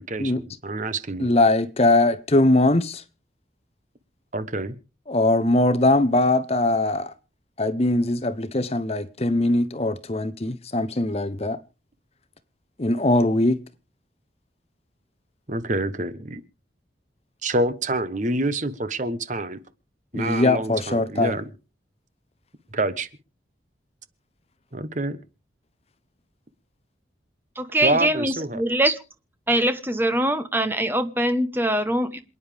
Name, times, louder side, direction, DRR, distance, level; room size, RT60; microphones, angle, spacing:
voice 1, 0.0-1.3 4.3-4.7 15.5-16.4 17.4-19.6 20.1-21.5 22.7-23.1 24.7-25.2 27.8-28.6, right 2 dB, 40° right, 1.1 m, -27 dB
voice 2, 1.2-3.0 5.1-7.1 7.6-11.6 12.8-13.6 20.1-21.4, left 2 dB, 30° left, 0.8 m, -21 dB
voice 3, 27.6-29.0 29.5-32.2, right 1 dB, 10° right, 1.1 m, -23 dB
27.5 x 9.8 x 3.4 m
head